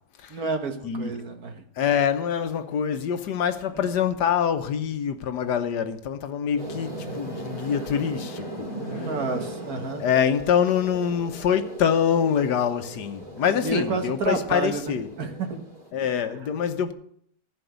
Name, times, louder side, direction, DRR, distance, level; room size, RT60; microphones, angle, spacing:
voice 1, 0.3-1.6 3.8-3.9 8.9-10.0 13.4-15.6 16.3-16.5, right 3 dB, 60° right, 1.7 m, -30 dB
voice 2, 1.8-8.5 8.9-9.1 10.0-15.1 15.9-16.9, left 8 dB, 75° left, 1.5 m, -25 dB
car wash, 6.6-15.9, right 1 dB, 25° right, 3.6 m, -38 dB
15.0 x 5.2 x 8.0 m
omnidirectional pair, 1.8 m